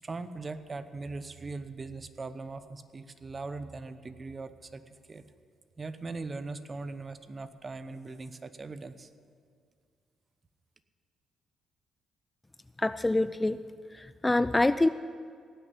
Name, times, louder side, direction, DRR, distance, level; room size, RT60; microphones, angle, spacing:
voice 1, 0.0-5.2 5.8-9.1, right 3 dB, 30° right, 11 dB, 0.9 m, -40 dB
voice 2, 12.8-13.6 14.0-14.9, left 2 dB, 15° left, 14 dB, 0.3 m, -25 dB
17.5 x 6.7 x 9.1 m, 2.2 s
cardioid pair, 90°, 0 cm